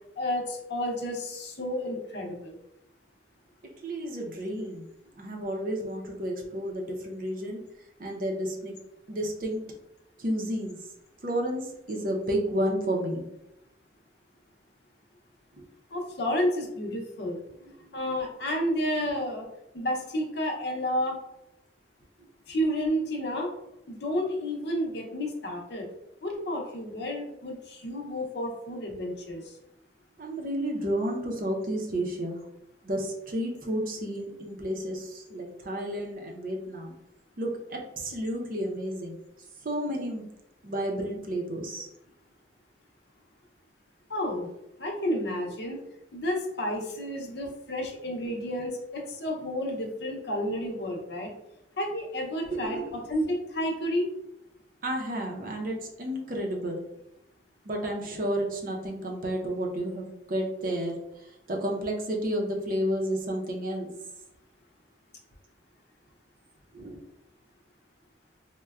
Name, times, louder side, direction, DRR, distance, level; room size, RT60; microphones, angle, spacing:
voice 1, 0.2-2.6 15.9-17.4 17.9-19.5 19.7-21.2 22.5-23.5 23.9-25.9 26.2-29.6 44.1-44.5 44.8-45.8 46.1-51.3 51.8-54.1, equal, 65° left, 1 dB, 0.6 m, -31 dB
voice 2, 3.8-4.8 5.2-7.6 8.0-8.7 9.1-9.7 10.2-10.8 11.2-13.2 15.6-15.7 17.8-17.9 30.2-32.4 32.8-37.0 37.4-39.2 39.6-40.2 40.6-41.9 52.4-52.9 54.8-56.8 57.6-60.9 61.5-63.9 66.7-67.0, right 1 dB, 50° right, 1 dB, 0.6 m, -31 dB
4.2 x 2.1 x 2.3 m, 0.86 s
head